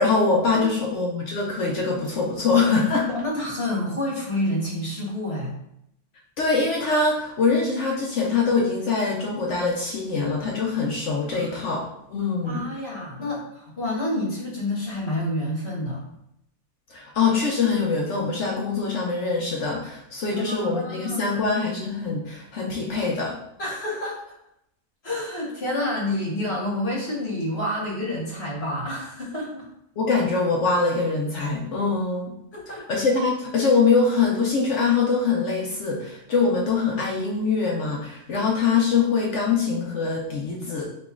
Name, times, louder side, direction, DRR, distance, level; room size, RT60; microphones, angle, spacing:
voice 1, 0.0-3.2 6.4-11.8 12.1-12.7 16.9-23.4 30.0-32.4 32.9-40.8, left 4 dB, 65° left, -2 dB, 0.8 m, -23 dB
voice 2, 0.5-1.0 3.1-5.5 11.3-11.7 12.4-16.0 20.3-21.4 23.6-24.2 25.0-29.6 32.5-32.8, left 1 dB, 45° left, -4 dB, 1.3 m, -29 dB
3.0 x 2.9 x 3.6 m, 0.77 s
omnidirectional pair, 1.5 m